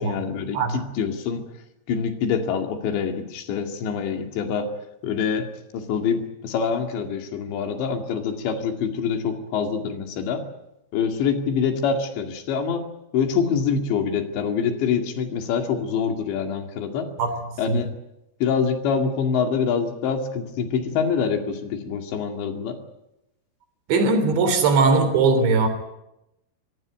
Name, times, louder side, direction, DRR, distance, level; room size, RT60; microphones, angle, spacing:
voice 1, 0.0-1.5 1.9-4.7 5.0-5.5 5.7-10.5 10.9-17.1 17.6-17.9 18.4-22.8, left 6 dB, 85° left, 5 dB, 4.5 m, -25 dB
voice 2, 23.9-25.7, right 4 dB, 90° right, 8 dB, 5.5 m, -19 dB
25.5 x 15.5 x 9.4 m, 0.89 s
omnidirectional pair, 5.0 m